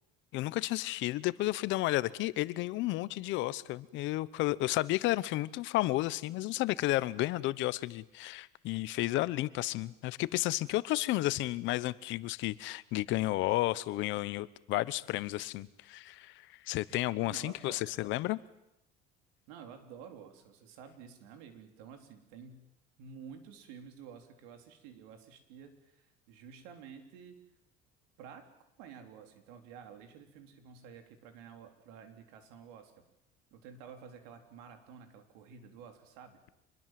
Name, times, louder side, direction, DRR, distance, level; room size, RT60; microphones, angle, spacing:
voice 1, 0.3-18.4, left 17 dB, 65° left, 18 dB, 1.0 m, -32 dB
voice 2, 17.2-17.8 19.5-22.6 23.0-27.4 28.2-28.5 28.8-32.9 33.5-36.4, right 7 dB, 90° right, 6 dB, 4.0 m, -51 dB
26.0 x 22.0 x 7.7 m, 0.85 s
cardioid pair, 130°, 21 cm